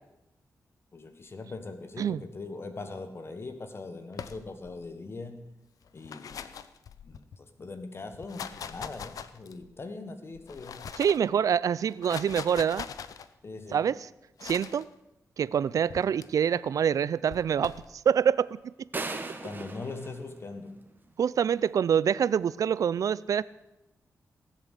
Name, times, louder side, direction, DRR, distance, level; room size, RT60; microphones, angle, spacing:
voice 1, 0.9-5.5 5.9-6.5 7.0-10.8 13.4-13.9 19.4-20.8, left 3 dB, 45° left, 9 dB, 1.3 m, -41 dB
sound 1, 4.1-4.8 5.8-7.4 8.1-9.7 10.3-11.3 11.9-13.3 14.4-14.8 15.9-16.3 17.3-17.9, left 7 dB, 85° left, 0.7 m, -42 dB
voice 2, 11.0-12.8 13.7-14.0 14.4-14.9 15.4-17.8 18.1-18.6 21.2-23.4, right 8 dB, 75° right, 20 dB, 0.4 m, -25 dB
sound 2, 18.9-21.1, right 3 dB, 35° right, 1.6 m, -38 dB
17.5 x 7.5 x 8.2 m, 0.94 s
cardioid pair, 80°, 6 cm